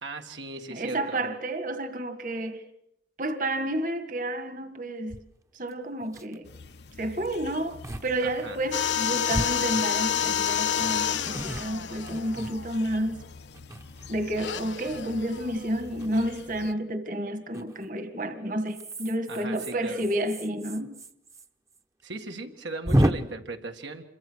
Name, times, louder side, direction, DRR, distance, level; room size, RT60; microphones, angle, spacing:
voice 1, 0.0-1.2 8.2-8.6 19.3-20.0 22.0-24.1, right 2 dB, 80° right, 1.9 m, -38 dB
voice 2, 0.7-2.6 3.2-5.2 5.5-6.5 7.0-13.2 14.1-20.9, right 1 dB, 45° right, 1.9 m, -30 dB
sound 1, 5.1-5.2 5.7-5.8 6.0-6.4 7.3-7.4 7.8-8.1 8.4-8.5 9.3-10.3 10.8-13.0 13.5-14.3 16.0-16.3 17.5-17.9 18.7-21.5 21.7-21.8 22.1-22.2 22.9-23.1, equal, 15° right, 1.0 m, -31 dB
sound 2, 6.4-16.7, left 4 dB, 65° left, 1.0 m, -47 dB
sound 3, 8.7-13.3 14.3-15.8, left 9 dB, 90° left, 1.3 m, -29 dB
27.5 x 23.0 x 6.4 m
head